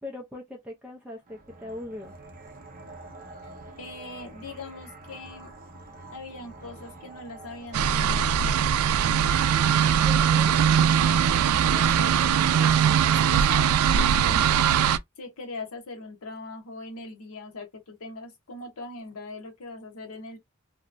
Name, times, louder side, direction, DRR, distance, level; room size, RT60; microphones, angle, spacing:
voice 1, 0.0-2.1 9.9-10.5, left 2 dB, 5° right, 0.4 m, -40 dB
sound 1, 1.2-14.8, right 2 dB, 40° right, 0.7 m, -46 dB
voice 2, 3.8-5.5 6.1-8.6 10.1-10.7 11.2-14.6 15.2-20.4, left 2 dB, 80° left, 0.8 m, -41 dB
sound 2, 7.7-15.0, right 8 dB, 90° right, 0.3 m, -21 dB
2.8 x 2.2 x 2.5 m
head